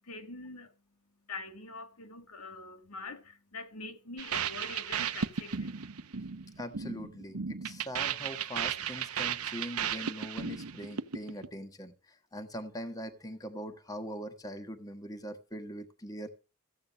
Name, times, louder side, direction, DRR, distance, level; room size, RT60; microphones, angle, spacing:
voice 1, 0.1-0.7 1.3-5.7, left 3 dB, 85° left, 2.1 m, -44 dB
sound 1, 4.2-11.5, right 7 dB, 75° right, 0.9 m, -35 dB
voice 2, 6.6-11.9 12.3-16.3, equal, 15° left, 1.3 m, -42 dB
14.5 x 8.5 x 5.6 m
head